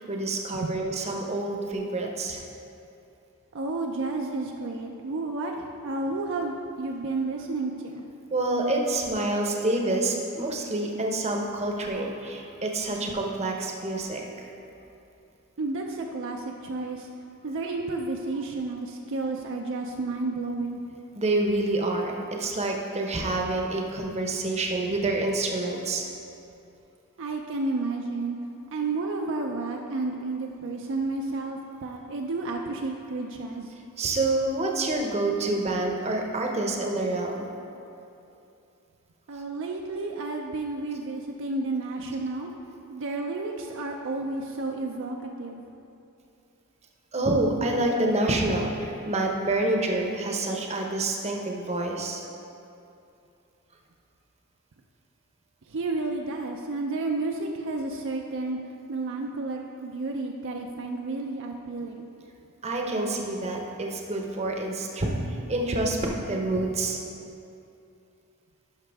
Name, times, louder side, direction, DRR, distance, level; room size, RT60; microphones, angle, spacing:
voice 1, 0.0-2.4 8.3-14.5 21.1-26.0 34.0-37.5 47.1-52.2 62.6-67.0, right 2 dB, 30° right, 1 dB, 0.8 m, -27 dB
voice 2, 3.5-8.0 15.6-17.1 17.4-20.9 27.2-28.4 28.7-33.7 39.3-42.5 42.9-45.6 55.7-58.6 58.9-62.1, right 3 dB, 60° right, 1 dB, 0.5 m, -31 dB
11.5 x 5.7 x 3.5 m, 2.7 s
head